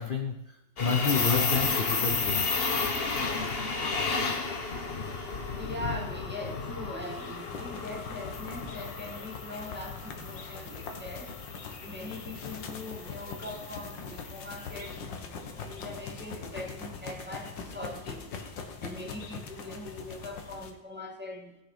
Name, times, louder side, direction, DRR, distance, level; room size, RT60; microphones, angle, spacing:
voice 1, 0.0-2.5, left 6 dB, 60° left, 5 dB, 0.5 m, -30 dB
sound 1, 0.8-14.8, left 4 dB, 35° left, 1.2 m, -33 dB
voice 2, 5.6-11.3 11.8-18.4 18.8-21.6, left 1 dB, 5° right, 0 dB, 2.0 m, -41 dB
sound 2, 7.0-20.7, left 5 dB, 80° left, 2.0 m, -42 dB
18.0 x 6.4 x 5.0 m, 0.89 s
omnidirectional pair, 2.0 m